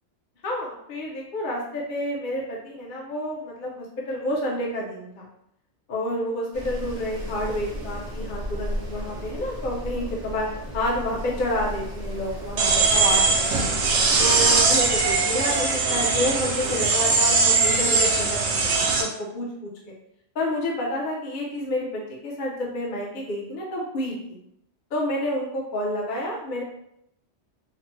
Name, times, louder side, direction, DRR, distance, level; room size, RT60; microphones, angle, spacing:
voice 1, 0.4-5.3 5.9-10.5 10.7-13.2 13.6-13.7 14.2-18.7 19.0-19.7 20.3-24.4 24.9-26.6, left 1 dB, 55° left, -3 dB, 0.7 m, -29 dB
Wind, 6.5-15.2, equal, 50° right, 0.7 m, -35 dB
sound 1, 12.6-19.0, right 4 dB, 80° right, 0.9 m, -21 dB
3.1 x 2.1 x 3.0 m, 0.77 s
omnidirectional pair, 1.2 m